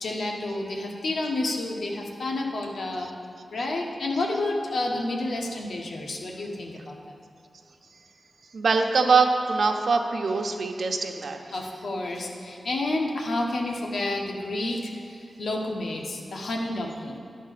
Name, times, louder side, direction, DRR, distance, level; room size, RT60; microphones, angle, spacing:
voice 1, 0.0-3.1 3.5-7.2 11.5-14.9 15.4-17.2, left 2 dB, 80° left, 0 dB, 1.2 m, -30 dB
voice 2, 8.5-11.4, right 4 dB, 70° right, 4 dB, 0.8 m, -23 dB
11.0 x 4.5 x 7.5 m, 2.5 s
wide cardioid pair, 90°, 0 cm